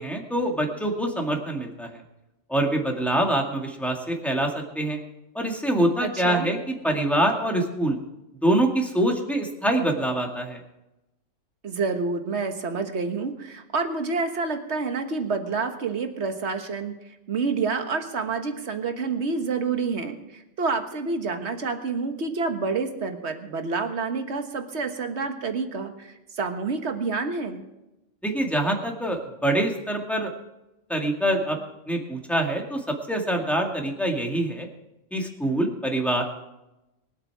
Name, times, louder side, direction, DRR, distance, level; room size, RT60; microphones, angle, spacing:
voice 1, 0.0-1.9 2.5-5.0 5.3-8.0 8.4-10.6 28.2-30.3 30.9-31.6 31.9-34.7 35.1-36.2, right 1 dB, ahead, 1 dB, 2.0 m, -25 dB
voice 2, 6.0-6.5 11.6-17.0 17.3-27.6, right 4 dB, 65° right, 6 dB, 1.6 m, -28 dB
23.0 x 8.3 x 4.8 m, 0.95 s
omnidirectional pair, 1.3 m